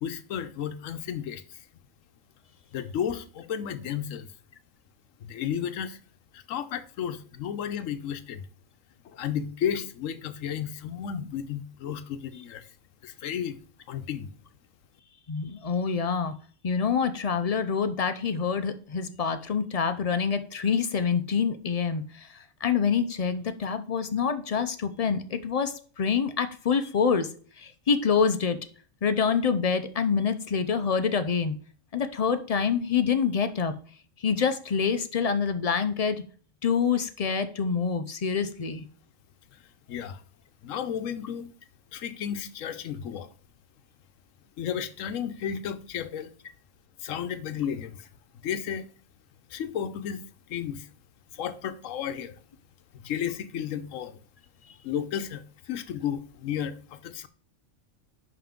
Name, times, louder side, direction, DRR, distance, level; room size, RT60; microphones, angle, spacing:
voice 1, 0.0-1.7 2.7-4.3 5.2-6.0 6.3-8.5 9.0-12.7 13.0-13.6 13.9-14.3 39.5-39.6 39.9-40.2 40.6-41.5 41.9-43.3 44.6-46.3 47.0-48.1 48.4-48.9 49.5-50.2 50.5-50.9 51.3-52.4 52.9-54.2 54.8-57.3, left 9 dB, 85° left, 1.1 m, -33 dB
voice 2, 15.3-16.4 16.6-27.3 27.6-28.6 29.0-31.6 31.9-33.8 34.2-36.2 36.6-38.9, left 6 dB, 50° left, 0.4 m, -26 dB
5.9 x 5.7 x 3.6 m
omnidirectional pair, 1.3 m